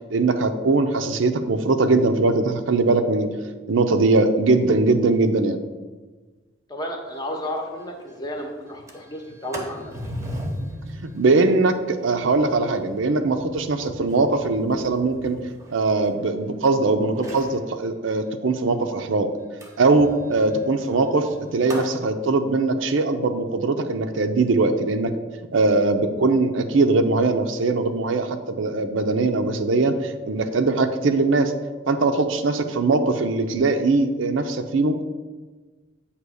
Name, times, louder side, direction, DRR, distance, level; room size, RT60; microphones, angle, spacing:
voice 1, 0.1-3.3 3.7-5.6 11.1-15.4 15.7-19.3 19.8-25.1 25.5-31.5 31.9-35.0, right 3 dB, 75° right, 8 dB, 0.5 m, -21 dB
voice 2, 6.7-9.9, equal, 20° left, 2 dB, 0.8 m, -32 dB
Sliding door, 7.1-7.2 7.6-7.7 8.0-8.3 8.7-16.7 17.1-17.6 19.6-22.0, equal, 15° right, 0.8 m, -38 dB
8.1 x 3.0 x 6.2 m, 1.3 s
head